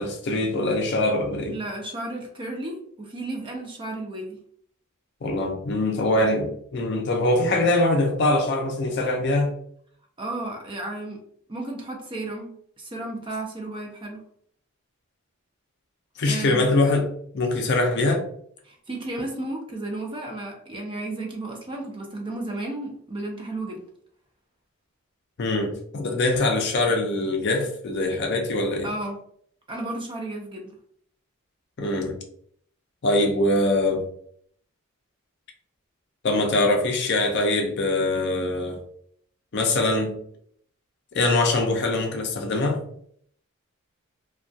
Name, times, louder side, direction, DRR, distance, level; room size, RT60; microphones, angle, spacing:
voice 1, 0.0-1.6 5.2-9.5 16.2-17.1 17.3-18.2 25.4-28.9 31.8-32.2 33.0-34.1 36.2-38.8 39.5-40.1 41.1-42.8, left 2 dB, 50° left, 0.4 m, -23 dB
voice 2, 1.5-4.4 10.2-11.2 11.5-14.2 16.3-16.7 18.6-23.8 28.8-29.2 29.7-30.7, right 2 dB, 25° right, 0.4 m, -33 dB
2.2 x 2.2 x 2.5 m
head